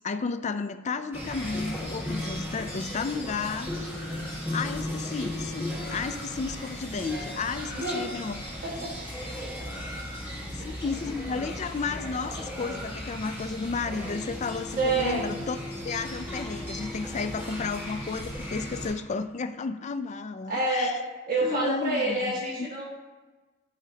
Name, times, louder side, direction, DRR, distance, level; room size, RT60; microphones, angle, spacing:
voice 1, 0.0-3.7 4.5-8.4 10.5-15.6 15.8-20.9 21.4-22.7, left 4 dB, 35° left, 10 dB, 0.4 m, -32 dB
sound 1, 1.1-18.9, left 1 dB, 10° right, 1.5 m, -36 dB
voice 2, 7.7-8.1 8.6-8.9 10.6-10.8 14.7-15.4 20.5-21.0 21.3-22.8, right 2 dB, 45° right, -5 dB, 1.6 m, -28 dB
11.0 x 5.0 x 2.8 m, 1.3 s
head